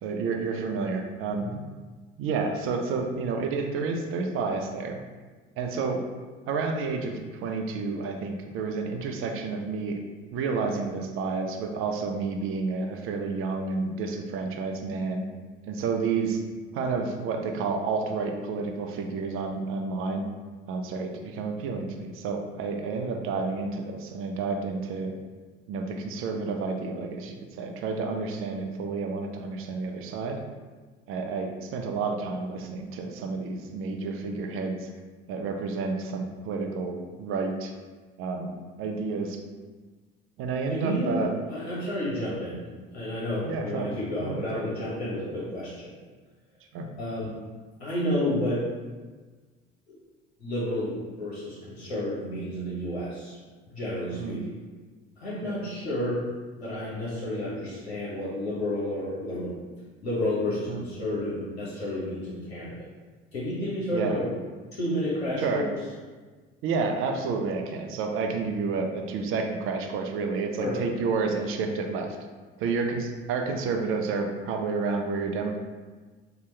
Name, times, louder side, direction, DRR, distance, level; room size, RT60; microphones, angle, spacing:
voice 1, 0.0-1.5 2.2-5.0 5.6-6.0 6.5-10.0 10.3-15.2 15.7-16.4 16.7-20.2 20.7-25.1 25.7-30.4 31.1-34.9 35.3-37.7 38.2-39.4 40.4-41.3 43.5-43.9 44.2-44.6 46.7-46.9 54.2-54.4 55.4-55.5 60.7-60.8 63.9-64.2 65.4-65.7 66.6-72.2 72.6-75.6, right 4 dB, 45° right, 3 dB, 0.4 m, -30 dB
voice 2, 40.7-42.6 42.9-45.9 47.0-47.4 47.8-48.7 49.9-50.0 50.4-53.4 53.7-54.5 55.2-56.2 56.6-59.5 60.0-62.8 63.3-64.3 64.7-65.7 70.6-70.9, left 1 dB, 80° left, -7 dB, 0.8 m, -31 dB
2.8 x 2.2 x 3.2 m, 1.4 s
figure-of-eight pair, 60°, 32 cm